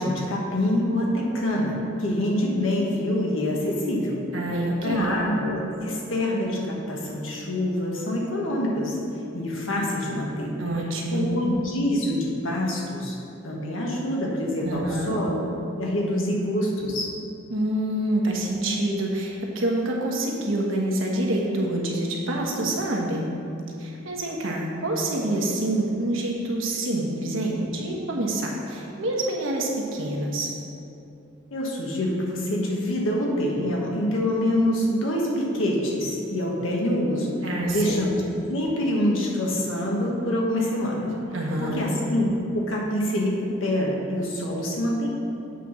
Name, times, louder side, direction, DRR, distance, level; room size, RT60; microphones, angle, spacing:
voice 1, 0.0-4.2 4.8-9.0 9.3-10.5 11.1-13.2 13.4-15.4 15.8-17.1 31.5-37.3 37.7-38.2 38.5-41.1 41.6-45.1, left 1 dB, 80° left, -2 dB, 1.4 m, -25 dB
voice 2, 4.3-5.2 10.6-11.3 14.6-15.2 17.5-23.3 23.8-30.5 37.4-37.9 41.3-41.8, right 1 dB, 80° right, -1 dB, 1.3 m, -27 dB
8.1 x 4.1 x 6.1 m, 2.8 s
head